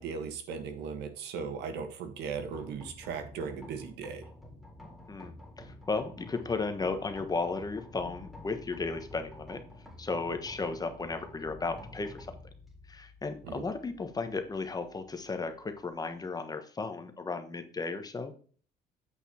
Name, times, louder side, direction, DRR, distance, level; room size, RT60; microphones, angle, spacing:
voice 1, 0.0-4.3 13.4-13.7, right 6 dB, 80° right, 8 dB, 1.6 m, -38 dB
sound 1, 2.4-16.2, left 1 dB, ahead, 3.5 m, -50 dB
voice 2, 5.1-9.6 10.0-12.3 12.9-18.4, left 3 dB, 20° left, 8 dB, 1.3 m, -35 dB
8.4 x 5.4 x 4.3 m, 0.43 s
cardioid pair, 110°, 17 cm